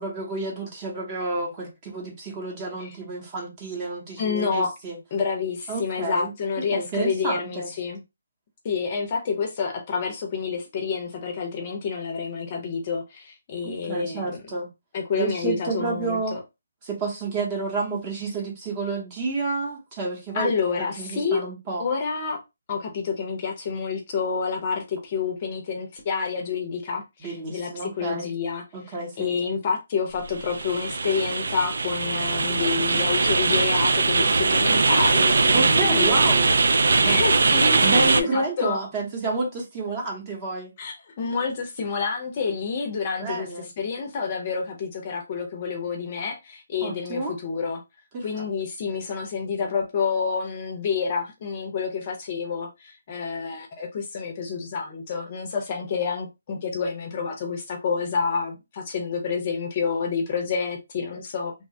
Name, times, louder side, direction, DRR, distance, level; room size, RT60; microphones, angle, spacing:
voice 1, 0.0-5.0 5.7-6.3 6.7-7.7 13.6-14.7 15.2-16.4 16.8-20.5 20.8-21.8 27.2-28.3 28.7-29.3 35.5-36.5 37.0-37.2 37.8-40.7 43.2-43.7 46.8-47.3 48.1-48.4, right 3 dB, 20° right, 0.8 m, -30 dB
voice 2, 4.2-4.7 5.1-8.0 8.6-14.4 14.9-16.4 20.3-21.4 21.8-22.4 22.7-36.2 37.0-38.8 40.8-47.8 48.2-61.5, left 5 dB, 30° left, 0.6 m, -28 dB
sound 1, 30.2-38.2, right 3 dB, 70° right, 0.3 m, -21 dB
2.9 x 2.2 x 2.6 m
hypercardioid pair, 170°, 0 cm